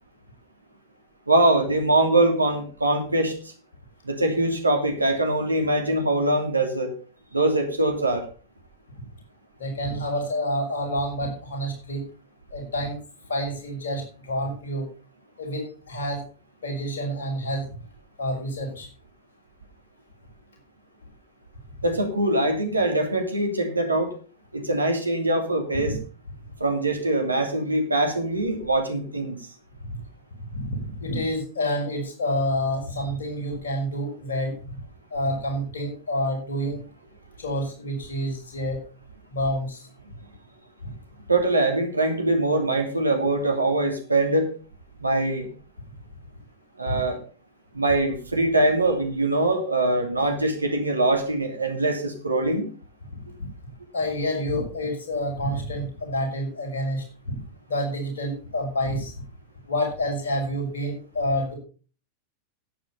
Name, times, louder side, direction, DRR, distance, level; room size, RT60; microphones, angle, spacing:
voice 1, 1.3-3.4 4.0-6.9 7.3-8.3 21.8-24.1 24.5-26.0 26.6-29.4 41.3-44.5 45.0-45.5 46.8-47.2 47.7-52.7, right 2 dB, 80° right, 5 dB, 2.7 m, -23 dB
voice 2, 9.6-12.0 12.5-12.9 13.3-14.8 15.4-16.2 16.6-17.6 18.2-18.9 25.8-25.9 30.5-34.5 35.1-36.8 37.4-38.8 39.3-39.8 40.8-40.9 46.9-47.0 53.9-57.4 57.7-59.1 59.7-61.5, equal, 65° left, 1 dB, 5.9 m, -28 dB
11.5 x 9.1 x 5.5 m, 0.37 s
figure-of-eight pair, 90°, 0 cm